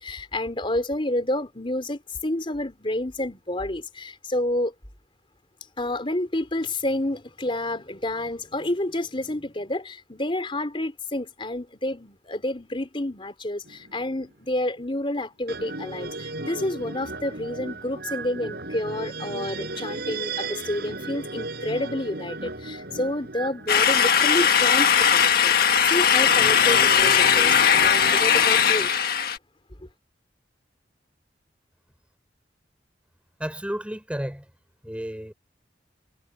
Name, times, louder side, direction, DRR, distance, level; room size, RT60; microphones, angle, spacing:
voice 1, 0.0-4.7 5.8-28.9 29.8-29.9, left 1 dB, 30° left, 3.8 m, -29 dB
sound 1, 13.7-14.1 15.5-25.1 26.1-28.9, right 2 dB, 60° right, 6.4 m, -36 dB
sound 2, 23.7-29.4, left 7 dB, 55° left, 1.5 m, -19 dB
voice 2, 33.4-34.5 34.8-35.3, equal, 5° right, 4.9 m, -32 dB
head